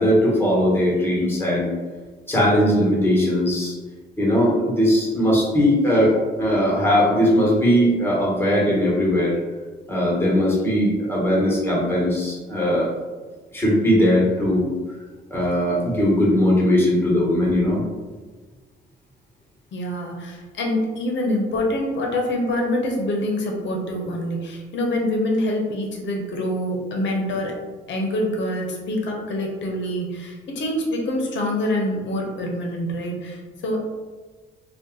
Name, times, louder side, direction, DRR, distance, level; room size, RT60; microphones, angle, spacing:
voice 1, 0.0-1.7 2.3-3.7 4.2-9.3 9.9-12.9 13.5-14.7 15.3-17.8, equal, 10° left, -5 dB, 1.3 m, -19 dB
voice 2, 19.7-27.5 27.9-33.8, left 1 dB, 65° left, 0 dB, 0.8 m, -25 dB
2.6 x 2.4 x 3.7 m, 1.4 s
cardioid pair, 90°, 20 cm